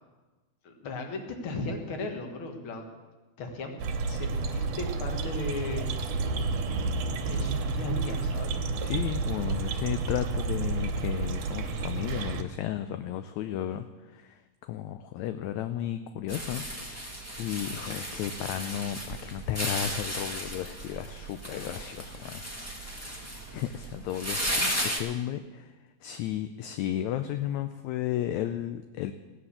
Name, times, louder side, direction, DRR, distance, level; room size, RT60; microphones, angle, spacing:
voice 1, 0.6-2.9 3.4-3.8 4.1-5.9 7.2-8.5, left 2 dB, 50° left, 4 dB, 2.2 m, -36 dB
sound 1, 3.8-12.4, right 3 dB, 85° right, 2.6 m, -30 dB
voice 2, 8.8-17.0 17.4-22.4 22.7-22.8 23.5-25.7 26.0-29.1, left 11 dB, 75° left, 9 dB, 1.8 m, -34 dB
sound 2, 16.3-25.0, equal, 10° left, 0.7 m, -35 dB
16.5 x 9.7 x 7.2 m, 1.2 s
omnidirectional pair, 3.5 m